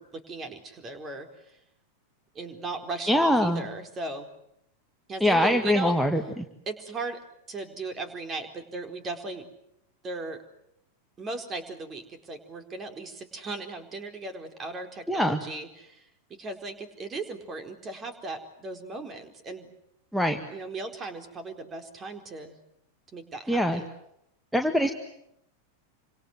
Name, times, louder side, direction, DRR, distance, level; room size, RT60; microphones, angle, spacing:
voice 1, 0.0-1.6 2.3-4.3 5.1-5.9 6.7-7.2 7.5-9.5 10.0-10.4 11.2-16.1 16.4-19.7 20.5-22.6 23.1-23.9, right 3 dB, 25° right, 7 dB, 4.3 m, -37 dB
voice 2, 3.1-3.6 5.2-6.5 15.1-15.4 20.1-20.4 23.5-23.8 24.5-24.9, equal, ahead, 6 dB, 1.9 m, -23 dB
28.5 x 26.0 x 7.9 m, 0.78 s
figure-of-eight pair, 90°, 0 cm